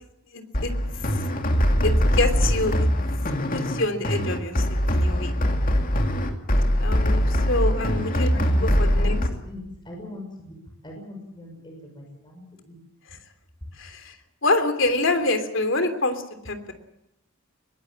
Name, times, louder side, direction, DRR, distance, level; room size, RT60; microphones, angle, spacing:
voice 1, 0.3-1.2 1.8-2.9 3.5-4.6 4.9-5.3 6.8-8.3 8.6-9.2 13.1-13.2 13.8-14.2 14.4-16.7, left 2 dB, 60° left, 8 dB, 3.2 m, -26 dB
sound 1, 0.5-9.3, equal, 40° left, 2.6 m, -22 dB
voice 2, 7.7-9.2 9.5-10.6 10.8-12.7, left 2 dB, 20° left, 1 dB, 6.4 m, -40 dB
22.0 x 19.0 x 8.7 m, 0.83 s
head